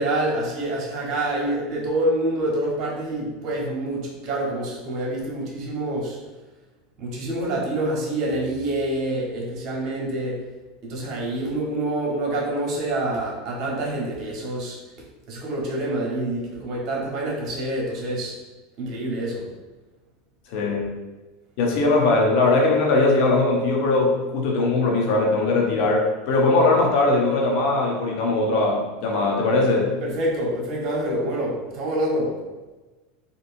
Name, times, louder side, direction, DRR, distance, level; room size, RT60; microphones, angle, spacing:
voice 1, 0.0-6.2 7.0-10.4 10.8-14.8 15.3-18.3 18.8-19.5 30.0-32.4, right 1 dB, 50° right, -3 dB, 1.2 m, -26 dB
voice 2, 20.5-20.9 21.6-29.9, left 2 dB, 60° left, -1 dB, 0.8 m, -20 dB
3.6 x 2.7 x 2.6 m, 1.2 s
supercardioid pair, 110°, 0 cm